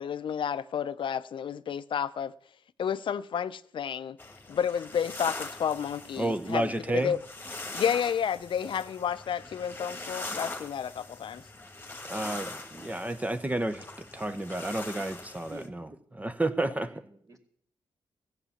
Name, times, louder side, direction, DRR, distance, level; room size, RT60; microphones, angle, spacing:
voice 1, 0.0-2.3 2.8-4.2 4.5-7.2 7.7-11.4, left 8 dB, 60° left, 0.6 m, -31 dB
sound 1, 4.2-15.7, left 2 dB, 20° left, 1.6 m, -42 dB
voice 2, 6.2-7.1 12.1-13.8 14.1-15.9 16.2-16.9, right 1 dB, 15° right, 0.8 m, -31 dB
voice 3, 15.5-15.8 16.4-17.4, right 3 dB, 35° right, 2.3 m, -47 dB
14.5 x 8.1 x 7.2 m
cardioid pair, 85°, 9 cm